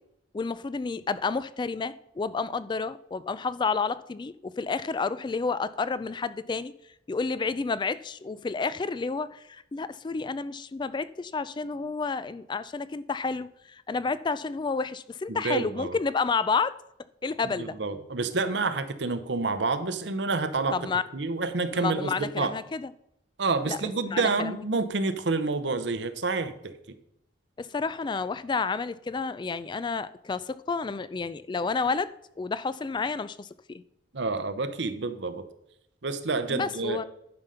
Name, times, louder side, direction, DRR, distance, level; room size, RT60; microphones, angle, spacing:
voice 1, 0.3-6.7 7.1-16.8 17.2-17.8 20.7-21.0 21.7-22.9 23.7-23.8 24.1-24.6 27.6-33.8 36.5-37.0, left 4 dB, 25° left, 0.3 m, -30 dB
voice 2, 15.3-16.0 17.6-20.9 21.1-22.5 23.4-26.7 34.1-35.4 36.0-37.0, right 3 dB, 70° right, 0.8 m, -28 dB
10.5 x 5.2 x 5.6 m
head